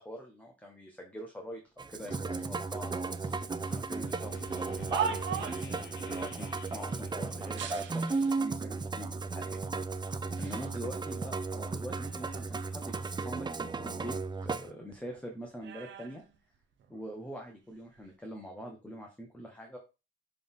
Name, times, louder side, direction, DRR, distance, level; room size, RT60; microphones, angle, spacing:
voice 1, 0.0-3.1 3.7-5.4 5.7-9.6 10.4-14.2 14.4-16.2 16.9-19.8, equal, 5° left, 1 dB, 1.5 m, -44 dB
Musical instrument, 1.8-14.7, right 4 dB, 20° right, 0.5 m, -35 dB
sound 1, 2.1-7.7, left 6 dB, 65° left, 1.1 m, -53 dB
sound 2, 4.9-5.8 7.5-8.5 9.2-9.3 10.1-10.7 11.2-12.6 13.0-14.7 14.9-17.1 17.8-18.1, right 7 dB, 70° right, 1.0 m, -41 dB
6.8 x 3.7 x 3.9 m, 0.29 s
cardioid pair, 90°, 20 cm